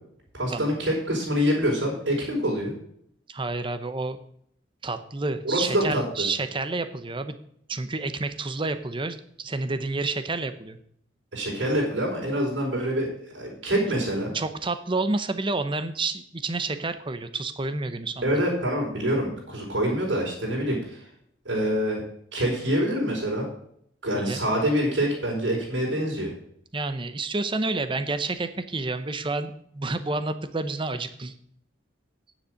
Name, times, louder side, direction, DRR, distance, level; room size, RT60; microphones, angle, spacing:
voice 1, 0.3-2.7 5.4-6.3 11.3-13.1 13.3-14.3 18.2-21.0 21.4-22.0 22.3-23.4 24.0-26.3, equal, 75° right, -3 dB, 4.7 m, -26 dB
voice 2, 3.3-4.2 4.8-7.3 7.7-10.8 14.3-18.4 24.1-24.4 26.7-31.3, right 3 dB, 25° right, 11 dB, 0.8 m, -29 dB
9.7 x 7.2 x 6.5 m, 0.68 s
head